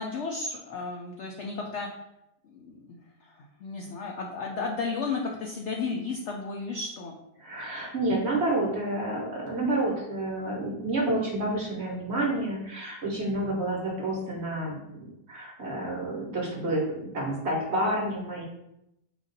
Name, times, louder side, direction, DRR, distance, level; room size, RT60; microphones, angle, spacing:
voice 1, 0.0-1.9 2.4-7.2, left 4 dB, 70° left, 1 dB, 0.6 m, -34 dB
voice 2, 7.4-16.8 17.1-18.4, right 1 dB, 45° right, -2 dB, 1.2 m, -29 dB
5.0 x 2.6 x 3.9 m, 0.84 s
omnidirectional pair, 1.7 m